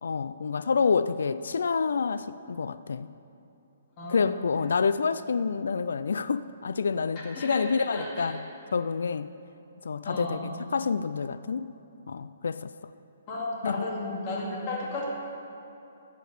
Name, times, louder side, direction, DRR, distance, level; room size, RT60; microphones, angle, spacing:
voice 1, 0.0-3.1 4.1-8.4 8.7-9.3 9.8-11.7 12.1-12.7 13.6-13.8, left 5 dB, 80° left, 14 dB, 0.3 m, -28 dB
voice 2, 4.0-4.4 7.3-8.3 10.0-10.5 13.3-15.0, left 2 dB, 25° left, -4 dB, 2.3 m, -34 dB
14.0 x 5.1 x 8.1 m, 2.8 s
hypercardioid pair, 170°, 0 cm